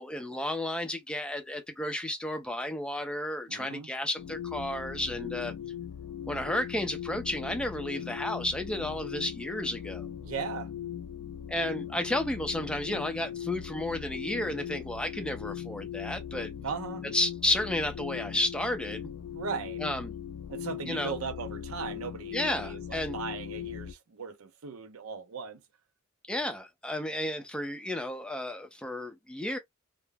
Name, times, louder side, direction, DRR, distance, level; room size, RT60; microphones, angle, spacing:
voice 1, 0.0-5.5 6.3-10.1 11.5-16.5 17.1-19.1 19.8-20.2 20.9-21.2 22.3-23.2 26.3-29.6, left 1 dB, 5° left, 0.5 m, -32 dB
voice 2, 3.5-3.9 10.2-10.7 16.6-17.0 19.3-19.8 20.5-25.6, right 6 dB, 85° right, 0.5 m, -38 dB
sound 1, 4.2-23.9, left 9 dB, 80° left, 0.3 m, -39 dB
2.2 x 2.0 x 3.3 m
head